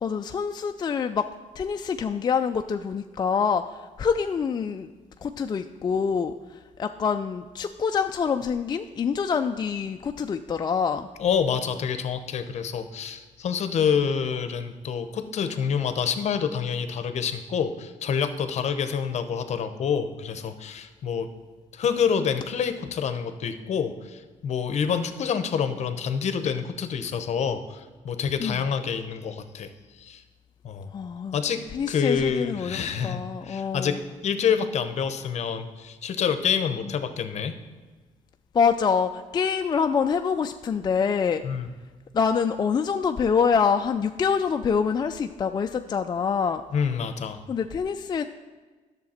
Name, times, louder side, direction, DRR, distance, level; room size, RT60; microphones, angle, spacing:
voice 1, 0.0-1.3 1.6-4.9 5.2-6.3 6.8-11.1 28.4-28.6 30.9-31.4 31.7-32.8 33.0-34.0 38.5-41.4 42.1-46.6 47.5-48.2, left 6 dB, 35° left, 7 dB, 0.3 m, -25 dB
voice 2, 11.2-21.3 21.7-30.2 30.6-30.9 31.3-37.5 41.4-41.7 46.7-47.4, left 7 dB, 60° left, 10 dB, 0.8 m, -27 dB
10.5 x 6.7 x 4.3 m, 1.3 s
cardioid pair, 105°, 13 cm